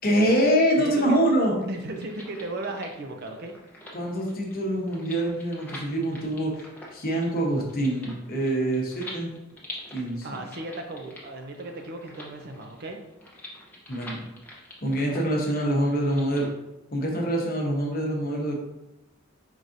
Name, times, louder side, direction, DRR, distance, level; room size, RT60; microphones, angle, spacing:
voice 1, 0.0-1.5 3.9-6.6 6.9-9.3 9.9-10.4 13.9-14.2 14.8-16.5 16.9-18.6, right 1 dB, 45° left, -1 dB, 0.9 m, -25 dB
voice 2, 0.8-1.2 1.6-3.5 10.2-13.0, right 2 dB, 50° right, 4 dB, 0.5 m, -36 dB
sound 1, 1.7-16.5, left 1 dB, 10° left, 0.8 m, -46 dB
4.6 x 4.0 x 2.6 m, 0.93 s
head